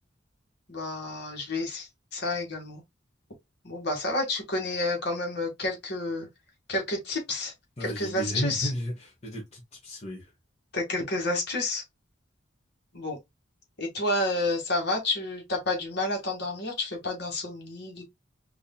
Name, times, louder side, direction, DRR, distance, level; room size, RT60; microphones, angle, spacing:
voice 1, 0.7-2.8 3.6-6.3 6.7-7.5 7.8-8.7 10.7-11.8 12.9-13.2 13.8-18.0, left 2 dB, 55° left, 2.0 m, -30 dB
voice 2, 7.8-10.3, equal, 35° left, 1.2 m, -33 dB
4.9 x 2.8 x 2.3 m
head